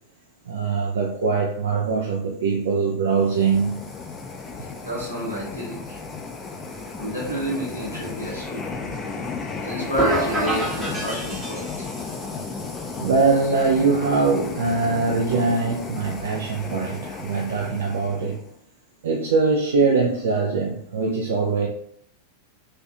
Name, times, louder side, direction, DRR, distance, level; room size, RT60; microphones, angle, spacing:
voice 1, 0.5-3.9 13.0-18.4 19.0-21.7, right 4 dB, 60° right, -1 dB, 0.3 m, -22 dB
sound 1, 3.1-18.5, left 4 dB, 20° left, 0.4 m, -34 dB
voice 2, 4.8-6.0 7.0-8.6 9.6-11.7, right 1 dB, 85° right, -5 dB, 1.1 m, -29 dB
sound 2, 10.0-12.1, equal, 15° right, 1.0 m, -27 dB
2.5 x 2.4 x 2.3 m, 0.65 s
figure-of-eight pair, 90°, 0 cm